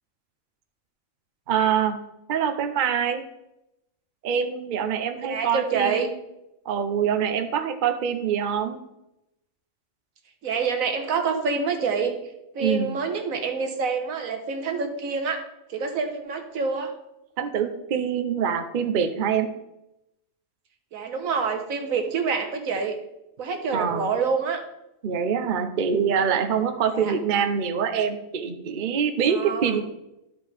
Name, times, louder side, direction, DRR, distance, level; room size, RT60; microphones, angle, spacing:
voice 1, 1.5-2.0 2.3-3.2 4.2-6.1 6.7-8.8 12.6-12.9 17.4-19.5 23.7-24.1 25.0-29.8, right 7 dB, 50° right, 7 dB, 0.6 m, -25 dB
voice 2, 5.2-6.1 10.4-12.1 12.5-16.9 20.9-23.0 23.4-24.6 26.9-27.1 29.3-29.8, right 5 dB, 75° right, 5 dB, 1.4 m, -27 dB
12.5 x 5.0 x 3.4 m, 0.88 s
omnidirectional pair, 1.4 m